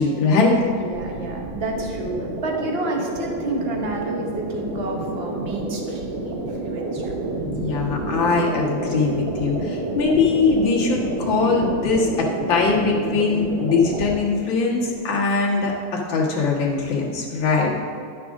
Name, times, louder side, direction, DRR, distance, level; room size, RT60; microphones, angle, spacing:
voice 1, 0.0-0.6 7.4-17.7, left 4 dB, 75° left, -3 dB, 2.1 m, -21 dB
voice 2, 0.7-7.1, right 2 dB, 40° right, 1 dB, 1.1 m, -29 dB
sound 1, 0.9-14.1, right 2 dB, 80° right, 1.8 m, -29 dB
11.5 x 6.2 x 3.6 m, 2.5 s
omnidirectional pair, 2.1 m